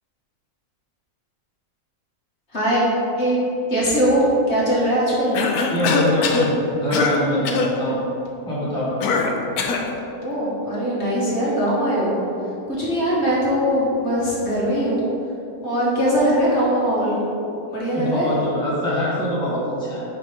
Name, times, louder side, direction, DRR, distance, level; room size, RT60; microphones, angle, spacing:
voice 1, 2.5-2.8 3.2-3.4 3.7-5.4 10.2-12.1 12.7-15.0 15.6-17.2 17.7-18.3, equal, 45° left, -7 dB, 1.7 m, -21 dB
Cough, 5.3-6.5 6.9-7.2 7.4-7.7 9.0-9.9, left 4 dB, 75° left, 1.1 m, -21 dB
voice 2, 5.7-8.0 8.5-8.9 18.0-20.0, equal, 5° left, -8 dB, 1.2 m, -24 dB
5.2 x 5.0 x 5.0 m, 2.8 s
omnidirectional pair, 1.6 m